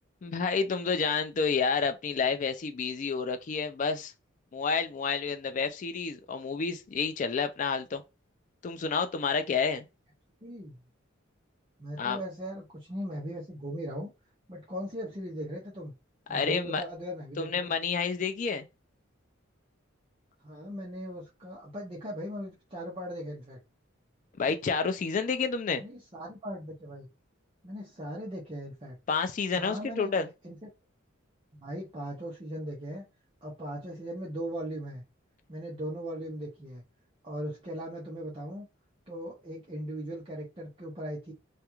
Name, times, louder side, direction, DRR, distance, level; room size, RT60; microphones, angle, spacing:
voice 1, 0.2-4.1 4.5-8.0 8.6-9.9 12.0-12.2 16.3-16.8 17.4-18.7 24.4-25.8 29.1-30.3, left 5 dB, 40° left, 0.3 m, -29 dB
voice 2, 10.4-10.8 11.8-14.1 14.5-15.9 16.3-17.8 20.4-23.6 25.8-27.1 27.6-29.0 29.5-30.1 30.4-30.6 31.5-33.0 33.4-35.0 35.5-36.8 37.2-38.7 39.1-41.3, equal, 25° right, 0.5 m, -38 dB
2.3 x 2.2 x 2.9 m
head